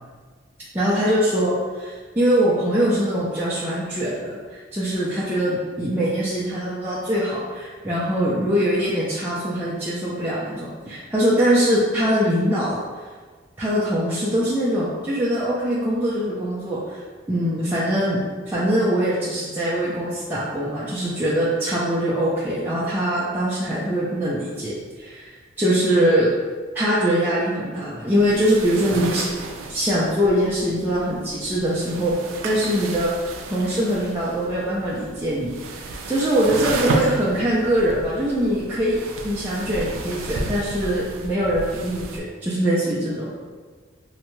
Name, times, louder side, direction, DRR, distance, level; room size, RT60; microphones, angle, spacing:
voice 1, 0.7-12.8 13.6-17.0 17.3-18.2 18.5-26.3 26.7-29.3 29.7-32.1 32.4-33.1 33.5-39.0 39.2-43.3, equal, 10° right, -10 dB, 0.4 m, -22 dB
sound 1, 28.1-42.2, right 2 dB, 90° right, 0.3 m, -32 dB
2.7 x 2.1 x 3.0 m, 1.5 s
head